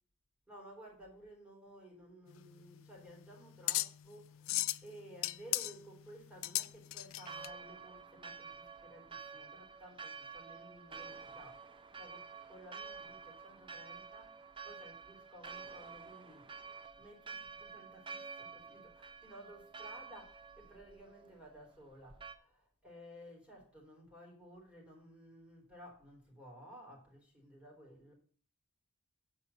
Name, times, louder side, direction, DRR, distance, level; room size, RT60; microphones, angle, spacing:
voice 1, 0.5-16.5 17.0-28.1, equal, 5° right, 4.1 m, -55 dB
sound 1, 2.3-7.5, left 16 dB, 65° left, 0.4 m, -37 dB
Church bell, 7.2-22.4, right 5 dB, 25° right, 0.6 m, -50 dB
7.9 x 5.5 x 7.1 m
head